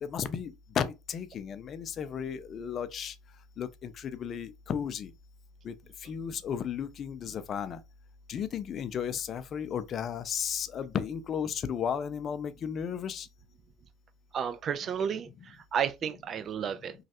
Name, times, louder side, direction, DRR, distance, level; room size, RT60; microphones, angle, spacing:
voice 1, 0.0-3.1 3.6-5.1 5.6-5.7 6.0-7.8 8.3-13.3, left 8 dB, 40° left, 0.4 m, -34 dB
voice 2, 14.3-16.9, right 8 dB, 40° right, 0.4 m, -32 dB
3.1 x 2.3 x 2.8 m
supercardioid pair, 105°, 0 cm